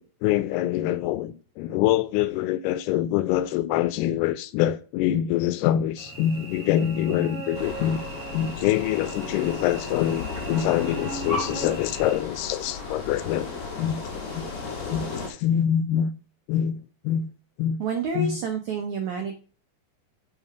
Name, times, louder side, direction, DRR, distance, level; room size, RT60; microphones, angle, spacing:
voice 1, 0.2-8.0 8.3-13.5 13.8-14.0 14.4-14.5 14.9-16.1 16.5-17.3 17.6-17.8 18.1-18.4, left 11 dB, 85° left, 2.6 m, -25 dB
Cricket / Buzz, 6.0-12.2, right 4 dB, 40° right, 1.2 m, -39 dB
sound 1, 7.5-15.3, left 4 dB, 45° left, 2.4 m, -34 dB
voice 2, 17.8-19.3, right 4 dB, 85° right, 1.6 m, -28 dB
7.0 x 5.6 x 4.7 m
omnidirectional pair, 4.7 m